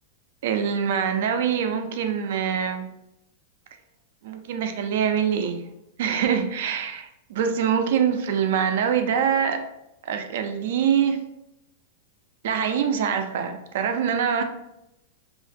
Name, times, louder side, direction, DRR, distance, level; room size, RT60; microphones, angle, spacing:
voice 1, 0.4-2.9 4.2-5.6 6.0-9.6 10.0-11.2 12.4-14.4, right 7 dB, 70° right, 7 dB, 0.3 m, -24 dB
2.4 x 2.1 x 2.6 m, 0.85 s
hypercardioid pair, 125°, 0 cm